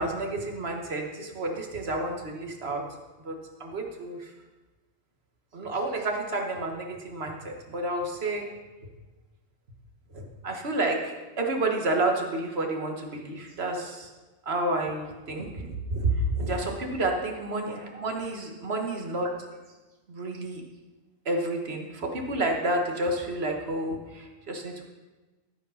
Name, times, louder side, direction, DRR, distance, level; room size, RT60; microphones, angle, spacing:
voice 1, 0.0-2.8 3.2-4.3 5.5-8.5 10.1-14.1 14.4-19.3 20.1-20.6 21.2-24.8, right 2 dB, 65° right, 2 dB, 1.6 m, -30 dB
13.5 x 5.2 x 5.6 m, 1.2 s
omnidirectional pair, 1.2 m